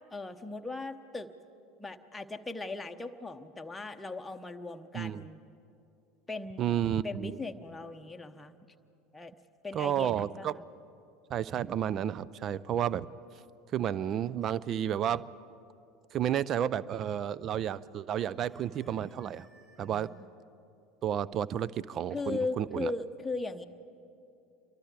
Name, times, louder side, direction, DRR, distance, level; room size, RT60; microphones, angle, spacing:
voice 1, 0.1-1.3 1.8-5.4 6.3-6.7 7.0-8.6 9.1-9.3 9.6-10.6 19.8-20.3 22.1-23.7, left 3 dB, 10° left, 5 dB, 1.0 m, -38 dB
voice 2, 4.9-5.3 6.6-7.3 9.7-10.5 11.3-13.1 13.7-15.2 16.1-19.5 19.8-20.1 21.0-22.9, right 10 dB, 35° right, 20 dB, 0.5 m, -31 dB
Chicken rooster, 13.5-14.7 18.1-20.3, right 1 dB, 15° right, 2.4 m, -63 dB
28.0 x 23.5 x 4.8 m, 2.6 s
figure-of-eight pair, 75°, 0 cm